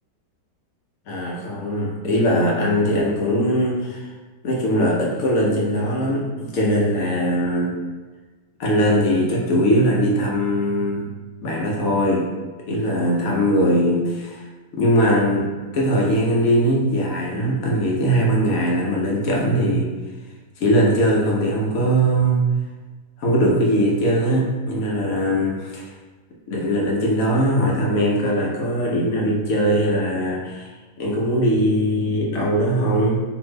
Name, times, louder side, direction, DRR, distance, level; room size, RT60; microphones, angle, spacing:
voice 1, 1.1-4.1 4.4-7.7 8.6-11.1 11.4-12.3 12.7-14.5 14.7-15.4 15.7-19.9 20.6-22.5 23.2-25.9 26.5-30.7 31.0-33.2, equal, 65° left, -3 dB, 0.9 m, -20 dB
2.6 x 2.5 x 3.1 m, 1.3 s
omnidirectional pair, 1.9 m